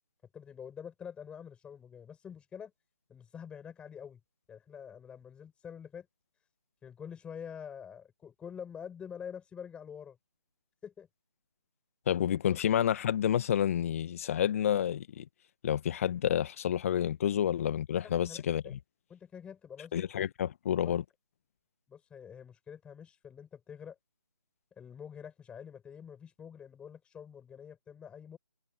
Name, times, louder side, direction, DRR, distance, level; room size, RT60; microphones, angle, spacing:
voice 1, 0.3-2.7 3.1-4.2 4.5-6.1 6.8-10.2 10.8-11.1 18.0-18.8 19.1-19.9 20.8-21.0 21.9-24.0 24.8-28.4, left 7 dB, 5° left, 7.0 m, -46 dB
voice 2, 12.1-15.2 15.6-18.8 19.9-21.0, left 10 dB, 30° left, 1.7 m, -29 dB
figure-of-eight pair, 150°, 15 cm